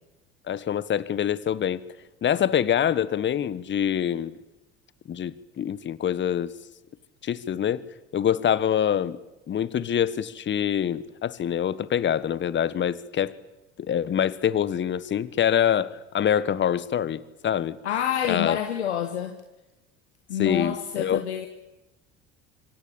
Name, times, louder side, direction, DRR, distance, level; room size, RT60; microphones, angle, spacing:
voice 1, 0.5-1.8 2.2-4.4 5.1-6.5 7.2-7.8 8.1-9.2 9.5-13.3 13.8-17.8 18.3-18.6 20.4-21.2, left 9 dB, 35° left, 17 dB, 1.4 m, -25 dB
voice 2, 17.8-19.4 20.3-21.5, left 9 dB, 75° left, 6 dB, 1.7 m, -28 dB
25.5 x 25.0 x 8.6 m, 1.0 s
figure-of-eight pair, 60°, 34 cm